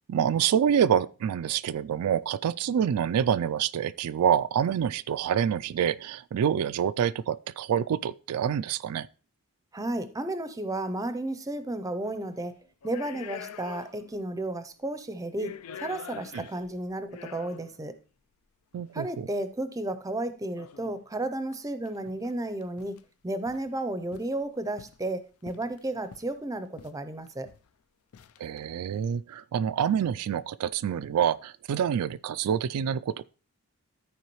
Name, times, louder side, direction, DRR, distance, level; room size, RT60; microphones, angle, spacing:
voice 1, 0.1-9.1 16.3-16.4 18.7-19.3 28.4-33.2, right 8 dB, 90° right, 0.3 m, -27 dB
voice 2, 9.7-12.6 12.8-18.0 18.9-23.0 23.2-27.5, right 1 dB, 15° right, 0.5 m, -33 dB
sound 1, 12.0-12.3 12.8-14.2 14.5-14.6 15.2-17.8 18.8-18.9 20.5-21.0 21.5-21.6 21.9-22.3 22.6-23.0 23.5-23.7 24.1-25.1 25.5-26.4 26.8-27.0 27.3-27.7 28.1-28.6, left 7 dB, 75° left, 0.4 m, -45 dB
13.5 x 4.7 x 3.0 m
head